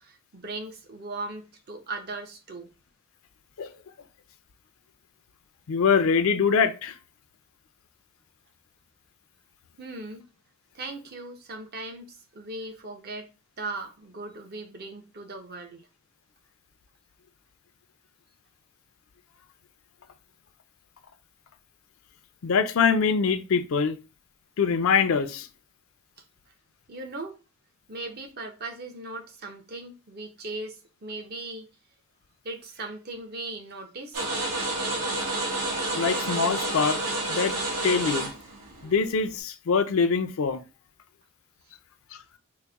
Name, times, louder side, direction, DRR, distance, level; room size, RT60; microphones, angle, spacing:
voice 1, 0.0-2.7 9.8-10.3 10.7-13.3 13.6-15.9 26.5-26.6 26.9-27.4 27.9-31.7 32.4-34.3, right 2 dB, 45° right, 0.7 m, -38 dB
voice 2, 5.7-7.0 22.4-24.0 24.6-25.5 35.9-37.0 37.3-37.6 37.8-38.3 38.8-40.6, left 5 dB, 65° left, 0.4 m, -23 dB
sound 1, 34.1-39.4, right 2 dB, 85° right, 1.3 m, -29 dB
4.0 x 2.1 x 3.4 m
head